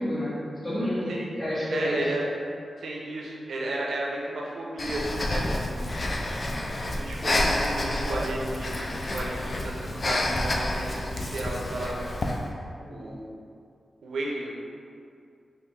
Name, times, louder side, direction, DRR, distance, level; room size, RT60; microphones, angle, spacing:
voice 1, 0.0-2.0 7.2-7.7 8.0-8.3 12.8-13.1, equal, 15° left, -11 dB, 1.4 m, -31 dB
voice 2, 1.7-2.3 2.8-5.9 6.9-12.0 12.9-13.3 14.0-14.5, right 1 dB, 90° right, -3 dB, 0.5 m, -33 dB
Breathing, 4.8-12.5, left 1 dB, 35° left, 0.3 m, -29 dB
3.5 x 2.5 x 3.3 m, 2.4 s
wide cardioid pair, 115°, 0 cm